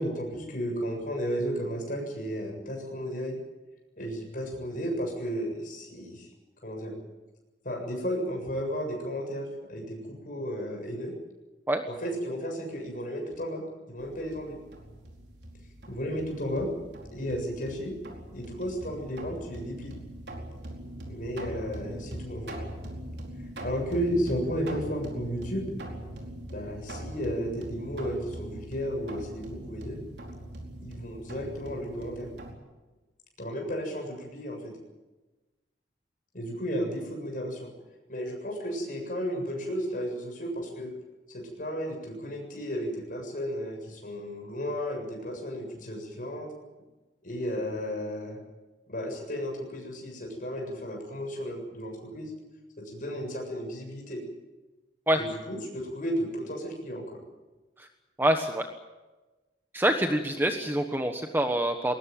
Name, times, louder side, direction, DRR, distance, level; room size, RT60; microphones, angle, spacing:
voice 1, 0.0-3.4 4.0-6.3 6.6-6.9 7.6-11.1 11.9-13.6 13.9-14.6 15.9-16.7 17.1-17.9 18.3-19.9 21.1-22.6 23.6-25.7 26.5-30.0 30.8-32.3 33.4-34.7 36.3-37.7 38.1-40.9 41.3-46.5 47.2-48.4 48.9-52.3 52.8-54.2 55.1-57.2, equal, 50° left, 2 dB, 7.4 m, -33 dB
sound 1, 14.0-32.5, right 1 dB, 70° right, 4.6 m, -41 dB
voice 2, 58.2-58.7 59.7-61.9, right 1 dB, 10° right, 5 dB, 1.3 m, -26 dB
21.5 x 19.0 x 9.1 m, 1.2 s
head